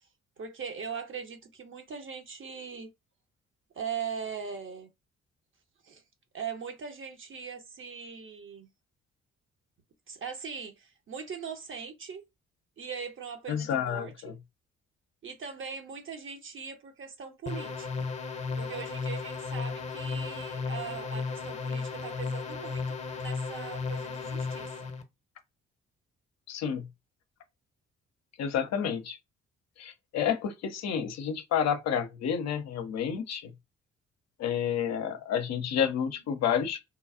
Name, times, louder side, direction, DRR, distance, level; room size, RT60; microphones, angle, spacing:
voice 1, 0.4-2.9 3.7-4.9 5.8-6.0 6.3-8.7 10.1-12.2 12.8-14.1 15.2-18.1 18.6-24.7, right 6 dB, 40° right, 0.8 m, -40 dB
voice 2, 13.5-14.3 26.5-26.9 28.4-29.2 29.8-33.5 34.4-36.9, left 8 dB, 55° left, 0.6 m, -30 dB
sound 1, 17.5-25.0, left 4 dB, 20° left, 0.8 m, -34 dB
3.1 x 2.3 x 2.4 m
figure-of-eight pair, 40°, 32 cm